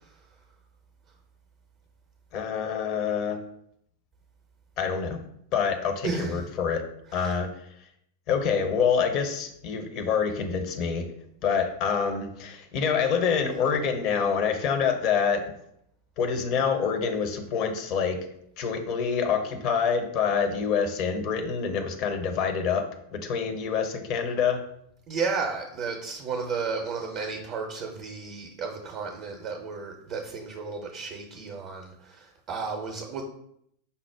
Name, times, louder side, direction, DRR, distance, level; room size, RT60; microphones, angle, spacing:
voice 1, 2.3-3.4 4.8-5.2 5.5-6.8 7.1-7.5 8.3-11.1 11.4-15.4 16.2-18.3 18.6-22.9 23.1-24.6, left 6 dB, 40° left, 6 dB, 0.6 m, -26 dB
voice 2, 6.0-6.4 7.1-7.4 25.1-33.2, right 4 dB, 35° right, 2 dB, 0.6 m, -33 dB
5.4 x 2.1 x 4.5 m, 0.73 s
figure-of-eight pair, 90°, 0 cm